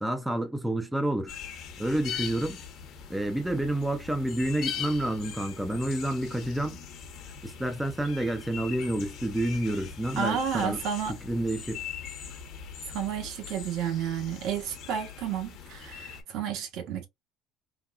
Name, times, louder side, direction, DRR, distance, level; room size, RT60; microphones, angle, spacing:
voice 1, 0.0-1.3 1.8-2.6 3.1-6.8 7.4-10.8 11.1-11.8, right 1 dB, 5° right, 0.4 m, -29 dB
sound 1, 1.3-16.2, left 7 dB, 50° left, 0.9 m, -41 dB
voice 2, 10.2-11.1 12.9-17.1, right 8 dB, 60° right, 0.9 m, -31 dB
3.6 x 2.2 x 2.3 m
cardioid pair, 165°, 0 cm